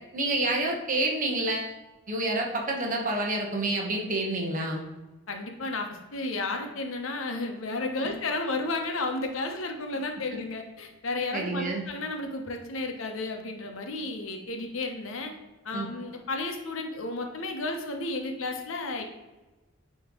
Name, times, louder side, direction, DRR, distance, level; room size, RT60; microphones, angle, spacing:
voice 1, 0.1-1.7 2.1-4.8 8.0-8.1 11.3-11.8 15.7-15.9, right 2 dB, 40° right, 0 dB, 1.1 m, -28 dB
voice 2, 5.3-15.3 15.6-19.0, left 2 dB, 70° left, 4 dB, 0.9 m, -32 dB
9.3 x 3.1 x 3.7 m, 1.1 s
head